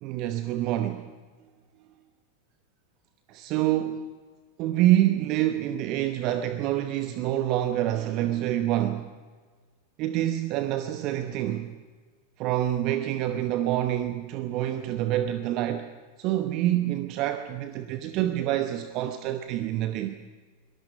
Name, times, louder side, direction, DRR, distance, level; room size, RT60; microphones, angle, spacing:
voice 1, 0.0-1.1 3.3-4.1 4.6-9.1 10.0-11.7 12.4-15.9 16.2-20.2, right 13 dB, 40° right, 1.0 m, -27 dB
24.0 x 19.0 x 6.4 m
figure-of-eight pair, 90°, 0 cm